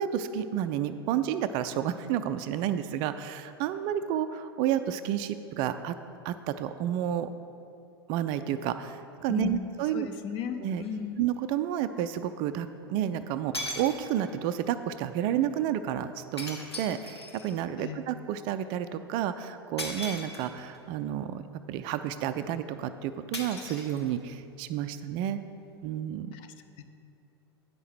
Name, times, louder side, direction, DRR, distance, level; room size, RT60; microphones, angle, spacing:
voice 1, 0.0-5.9 6.2-7.3 8.1-10.1 10.6-10.8 11.2-25.4 25.8-26.3, right 10 dB, 40° right, 11 dB, 0.3 m, -31 dB
voice 2, 9.3-9.7 9.9-11.2 17.8-18.0 26.3-26.8, left 7 dB, 40° left, 8 dB, 0.6 m, -36 dB
sound 1, 10.8-10.9 13.0-13.1 13.5-14.4 16.4-17.6 19.8-20.8 23.3-24.4, left 1 dB, 85° left, 1.2 m, -38 dB
9.3 x 5.5 x 6.1 m, 2.6 s
figure-of-eight pair, 85°, 13 cm